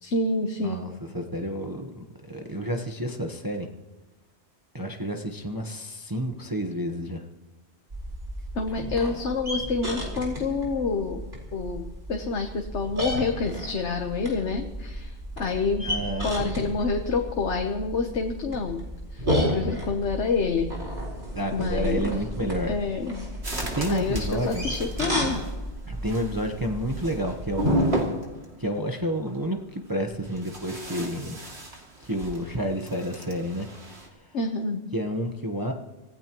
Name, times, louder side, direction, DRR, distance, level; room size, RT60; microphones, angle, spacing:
voice 1, 0.0-0.9 8.5-11.2 11.5-15.9 16.2-18.8 19.1-20.7 21.5-22.1 22.4-23.3 23.9-25.4 34.3-34.8, left 4 dB, 80° left, 4 dB, 1.4 m, -28 dB
voice 2, 1.1-3.7 4.7-7.2 8.8-8.9 15.8-16.7 21.3-22.7 23.8-24.6 25.9-28.2 28.6-31.4 32.0-33.7 34.9-35.7, equal, 20° right, 3 dB, 1.1 m, -30 dB
sound 1, 7.9-27.9, equal, 50° right, 4.7 m, -32 dB
sound 2, 23.4-34.1, right 1 dB, 70° right, 2.9 m, -38 dB
25.5 x 16.0 x 3.0 m, 1.1 s
omnidirectional pair, 1.2 m